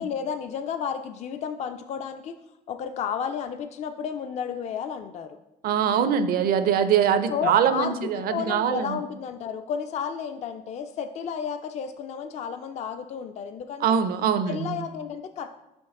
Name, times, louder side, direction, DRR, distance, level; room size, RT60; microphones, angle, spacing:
voice 1, 0.0-2.4 2.7-5.4 5.8-6.1 7.3-14.0 14.5-15.5, left 7 dB, 40° left, 8 dB, 0.4 m, -32 dB
voice 2, 5.6-9.0 13.8-14.8, right 8 dB, 60° right, 11 dB, 0.5 m, -23 dB
5.3 x 5.2 x 3.6 m, 0.92 s
cardioid pair, 110°, 17 cm